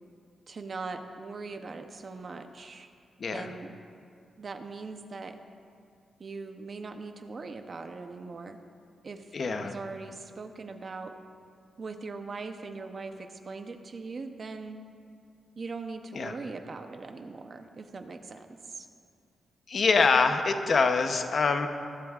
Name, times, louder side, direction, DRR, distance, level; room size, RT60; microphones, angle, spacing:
voice 1, 0.5-2.9 3.3-3.7 4.4-5.4 6.2-8.6 9.0-11.1 11.8-14.8 15.6-18.9, right 4 dB, 35° right, 7 dB, 0.6 m, -40 dB
voice 2, 9.3-9.7 16.1-16.4 19.7-21.7, left 4 dB, 45° left, 7 dB, 0.7 m, -25 dB
20.5 x 11.5 x 2.4 m, 2.4 s
wide cardioid pair, 160°, 0 cm